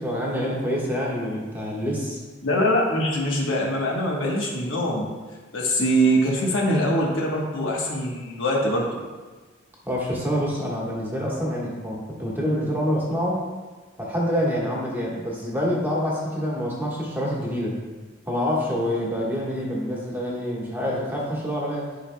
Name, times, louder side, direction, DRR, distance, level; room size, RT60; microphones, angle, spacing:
voice 1, 0.0-2.2 9.9-13.4 14.0-17.8 18.3-21.8, equal, 10° right, -4 dB, 1.3 m, -26 dB
voice 2, 2.4-5.1 5.5-8.9, equal, 65° left, -2 dB, 1.2 m, -23 dB
10.5 x 5.0 x 2.2 m, 1.3 s
head